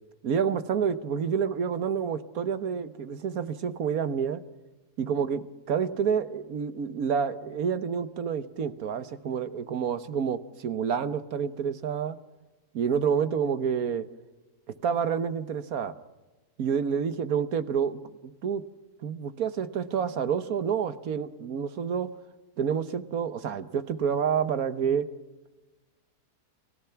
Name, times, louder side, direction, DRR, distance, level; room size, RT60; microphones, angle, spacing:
voice 1, 0.2-4.4 5.0-5.4 5.7-12.2 12.7-14.1 14.8-15.9 16.6-18.6 19.0-22.1 22.6-25.1, right 7 dB, 65° right, 12 dB, 1.5 m, -28 dB
30.0 x 17.0 x 5.8 m, 1.1 s
omnidirectional pair, 1.7 m